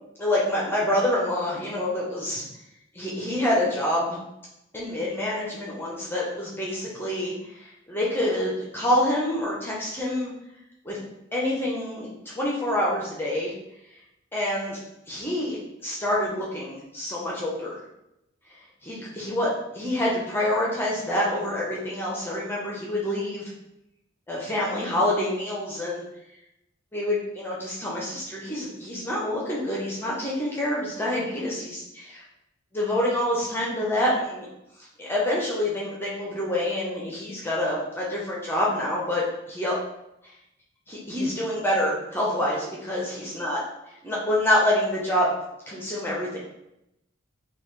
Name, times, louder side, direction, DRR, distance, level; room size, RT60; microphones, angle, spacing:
voice 1, 0.2-2.4 2.9-4.2 4.7-10.3 10.8-11.0 11.3-12.1 12.3-13.5 14.3-14.8 15.1-17.8 18.8-23.5 24.3-26.0 26.9-32.2 32.7-34.5 35.0-39.8 40.9-43.6 43.9-45.3 45.7-46.4, left 1 dB, 10° left, -5 dB, 0.6 m, -27 dB
3.7 x 2.3 x 3.2 m, 0.86 s
head